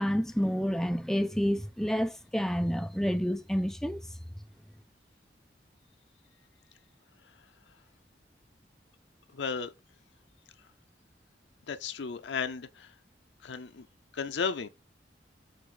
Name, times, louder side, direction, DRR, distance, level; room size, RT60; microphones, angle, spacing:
voice 1, 0.0-4.0, equal, 5° left, 0.4 m, -29 dB
voice 2, 9.3-9.7 11.7-12.9 13.4-13.8 14.1-14.7, left 5 dB, 85° left, 0.5 m, -34 dB
7.8 x 3.3 x 3.9 m
head